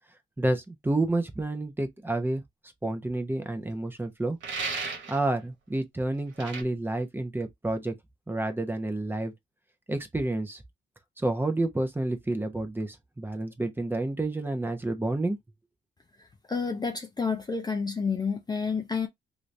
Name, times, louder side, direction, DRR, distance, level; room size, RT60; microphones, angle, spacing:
voice 1, 0.4-2.4 2.8-4.4 5.1-7.9 8.3-9.3 9.9-10.6 11.2-15.4, right 2 dB, 10° right, 0.8 m, -29 dB
sound 1, 4.4-5.2 6.4-6.6, right 4 dB, 70° right, 1.3 m, -33 dB
voice 2, 16.5-19.1, left 5 dB, 20° left, 0.5 m, -29 dB
3.0 x 2.7 x 3.2 m
cardioid pair, 90°, 20 cm